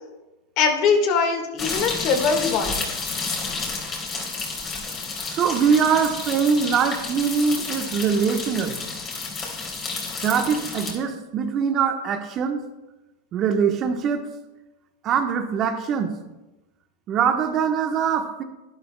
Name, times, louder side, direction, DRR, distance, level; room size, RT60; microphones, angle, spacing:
voice 1, 0.6-2.9, left 5 dB, 50° left, 5 dB, 1.7 m, -22 dB
sound 1, 1.6-10.9, left 4 dB, 30° left, 3.5 m, -31 dB
voice 2, 5.3-8.8 10.2-12.6 13.3-14.3 15.0-16.2 17.1-18.4, right 6 dB, 40° right, 6 dB, 1.1 m, -22 dB
11.5 x 11.5 x 2.2 m, 1.0 s
hypercardioid pair, 100°, 0 cm